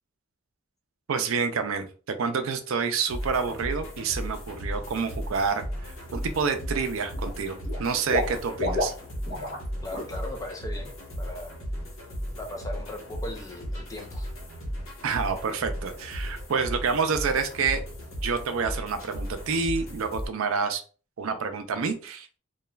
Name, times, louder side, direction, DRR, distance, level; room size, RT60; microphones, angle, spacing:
voice 1, 1.1-5.6 6.1-8.9 15.0-17.8 18.2-20.8 21.2-22.4, right 5 dB, 75° right, 8 dB, 0.4 m, -28 dB
sound 1, 3.1-20.3, equal, 70° left, 0.9 m, -36 dB
Water / Liquid, 5.5-5.8 6.1-6.8 7.1-9.7 9.9-10.1 10.5-10.6, left 1 dB, 40° left, 1.4 m, -31 dB
voice 2, 9.8-11.5 12.4-14.3, left 1 dB, 15° left, 2 dB, 0.4 m, -38 dB
3.0 x 2.3 x 2.3 m, 0.37 s
head